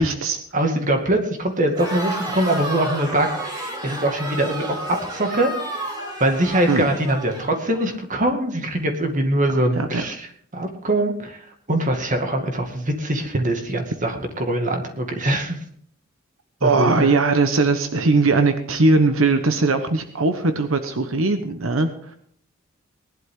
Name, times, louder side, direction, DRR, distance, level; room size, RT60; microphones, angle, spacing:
voice 1, 0.0-0.4 6.7-6.9 9.8-10.0 16.6-22.2, right 3 dB, 85° right, 8 dB, 1.2 m, -20 dB
voice 2, 0.5-5.5 6.2-10.3 10.5-11.4 11.7-15.6 16.6-17.1, right 1 dB, 40° right, 4 dB, 2.2 m, -23 dB
Crowd, 1.7-7.9, right 1 dB, 20° right, 3.1 m, -31 dB
19.5 x 11.5 x 3.8 m, 0.62 s
head